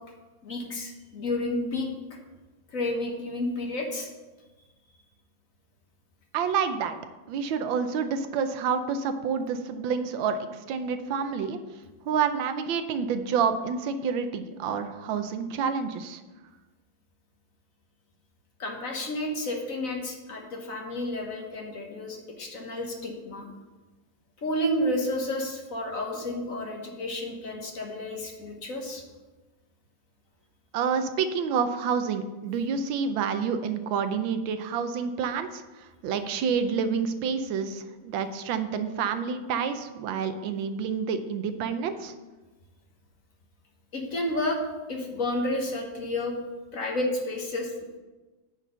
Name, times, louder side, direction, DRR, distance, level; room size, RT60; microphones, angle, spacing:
voice 1, 0.4-2.2 2.7-4.1 18.6-23.5 24.4-29.0 43.9-44.6 44.9-46.3 46.7-47.7, left 1 dB, 50° left, 1 dB, 1.5 m, -31 dB
voice 2, 6.3-6.9 7.3-11.6 12.1-16.2 30.7-42.1, right 6 dB, 85° right, 9 dB, 1.5 m, -28 dB
9.0 x 4.2 x 6.7 m, 1.2 s
omnidirectional pair, 2.1 m